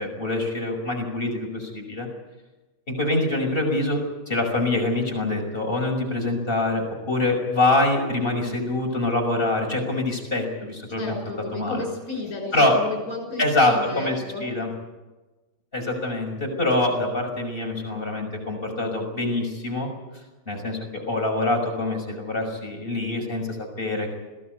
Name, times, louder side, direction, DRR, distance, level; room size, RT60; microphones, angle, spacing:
voice 1, 0.0-2.1 2.9-11.2 11.5-11.8 12.5-12.8 13.4-14.7 15.7-19.9 20.5-24.1, left 2 dB, 40° left, 1 dB, 6.2 m, -25 dB
voice 2, 10.9-14.4, left 2 dB, 65° left, 0 dB, 6.1 m, -33 dB
21.5 x 16.5 x 9.7 m, 1.1 s
omnidirectional pair, 1.5 m